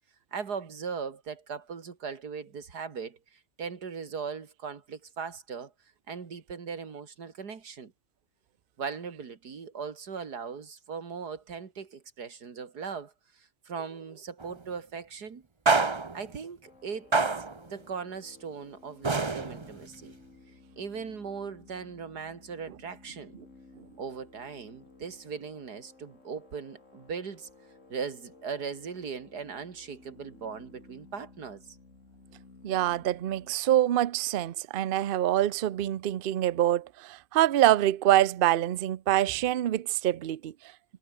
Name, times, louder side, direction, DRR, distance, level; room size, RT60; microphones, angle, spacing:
voice 1, 0.3-5.7 6.1-7.9 8.8-15.5 16.1-17.3 17.7-20.1 20.8-23.3 24.0-27.5 27.9-31.8, right 6 dB, 80° right, 2.7 m, -39 dB
sound 1, 14.4-14.6 15.7-16.3 17.1-17.7 19.0-19.8, right 3 dB, 20° right, 0.8 m, -26 dB
sound 2, 16.6-33.5, left 3 dB, 50° left, 4.1 m, -56 dB
voice 2, 32.6-40.5, right 13 dB, 65° right, 0.5 m, -25 dB
omnidirectional pair, 1.7 m